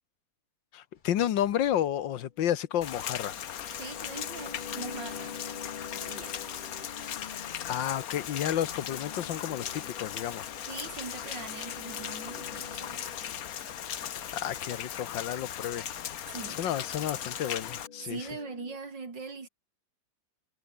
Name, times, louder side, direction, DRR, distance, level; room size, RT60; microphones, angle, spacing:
voice 1, 0.7-3.4 7.6-10.6 14.3-15.9 16.6-18.3, left 11 dB, 85° left, 1.8 m, -31 dB
sound 1, 1.0-7.9 8.4-14.1 14.5-14.7 15.7-15.8 16.4-16.5 17.0-18.8, left 6 dB, 35° left, 0.8 m, -48 dB
Rain, 2.8-17.9, left 9 dB, 55° left, 1.4 m, -38 dB
voice 2, 3.7-5.4 6.0-6.4 10.7-13.2 16.2-16.6 18.0-19.5, right 4 dB, 75° right, 4.3 m, -42 dB
omnidirectional pair, 2.0 m